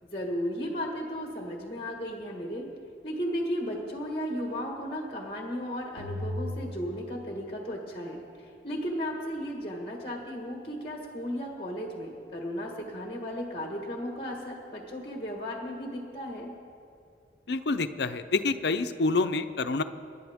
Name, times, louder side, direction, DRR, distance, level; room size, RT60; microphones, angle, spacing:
voice 1, 0.0-2.7 3.0-16.5, equal, 30° left, 0 dB, 1.5 m, -35 dB
sound 1, 6.0-7.8, left 1 dB, 80° right, 2.6 m, -37 dB
voice 2, 17.5-19.8, left 3 dB, 70° left, 10 dB, 0.6 m, -27 dB
27.5 x 11.0 x 3.6 m, 2.4 s
head